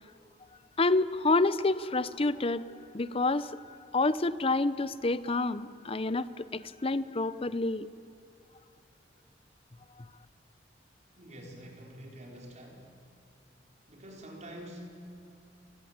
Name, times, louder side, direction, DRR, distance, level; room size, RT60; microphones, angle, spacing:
voice 1, 0.8-2.7 2.9-7.9, left 2 dB, 30° left, 16 dB, 0.7 m, -28 dB
voice 2, 11.1-13.0 13.9-15.0, equal, 40° right, 1 dB, 4.5 m, -47 dB
29.0 x 20.0 x 8.9 m, 2.9 s
head